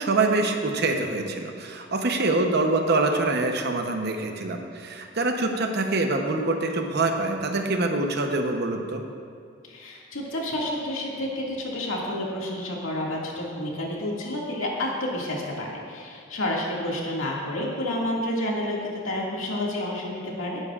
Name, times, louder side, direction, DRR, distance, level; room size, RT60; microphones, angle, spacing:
voice 1, 0.0-9.0, right 2 dB, 55° right, 4 dB, 0.9 m, -25 dB
voice 2, 9.7-20.6, left 1 dB, 80° left, -3 dB, 2.1 m, -30 dB
17.0 x 9.8 x 2.5 m, 2.3 s
head